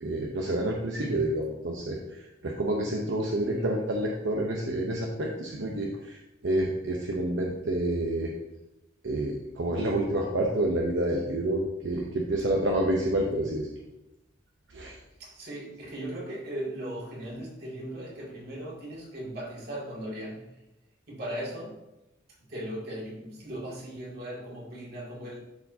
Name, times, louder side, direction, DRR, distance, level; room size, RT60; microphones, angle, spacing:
voice 1, 0.0-8.3 9.0-13.7 14.7-15.0, right 1 dB, 80° right, -1 dB, 0.8 m, -29 dB
voice 2, 1.0-1.3 3.4-3.8 13.2-13.5 15.2-20.5 21.1-21.8 22.5-25.4, right 1 dB, 60° right, -4 dB, 2.3 m, -38 dB
11.5 x 4.6 x 2.8 m, 0.94 s
head